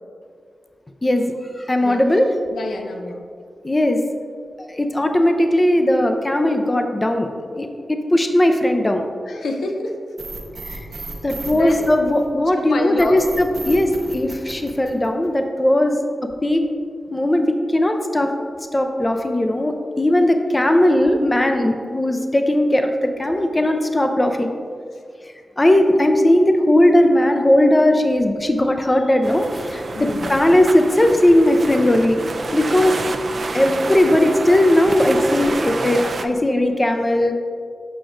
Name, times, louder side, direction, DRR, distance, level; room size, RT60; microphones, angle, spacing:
voice 1, 1.0-2.3 3.6-4.0 4.7-7.3 7.5-9.0 10.7-10.8 11.2-16.0 16.4-16.6 17.1-17.5 17.7-18.3 18.7-24.5 25.6-32.2 32.5-33.0 33.5-37.3, left 1 dB, 20° left, 5 dB, 0.4 m, -18 dB
voice 2, 1.8-2.2 2.5-3.2 9.2-10.0 10.2-11.1 11.5-11.8 12.5-13.2 24.9-25.0 29.9-30.7, left 2 dB, 85° left, 3 dB, 0.6 m, -29 dB
sound 1, 10.2-12.5 13.0-15.4, right 3 dB, 80° right, 0.7 m, -34 dB
sound 2, 29.2-36.2, right 3 dB, 55° right, 0.3 m, -28 dB
6.9 x 5.9 x 2.5 m, 2.2 s
wide cardioid pair, 90°, 0 cm